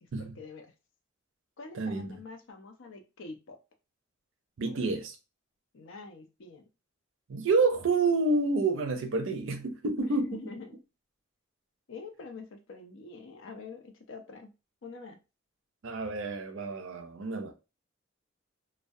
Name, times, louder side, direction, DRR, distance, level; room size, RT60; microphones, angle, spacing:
voice 1, 0.0-0.7 1.6-3.6 5.7-6.7 10.0-10.8 11.9-14.5 14.8-15.2, left 4 dB, 65° left, 0.5 m, -45 dB
voice 2, 1.7-2.1 4.6-5.2 7.3-10.3 15.8-17.5, right 3 dB, 65° right, 0.5 m, -28 dB
2.3 x 2.1 x 2.5 m
head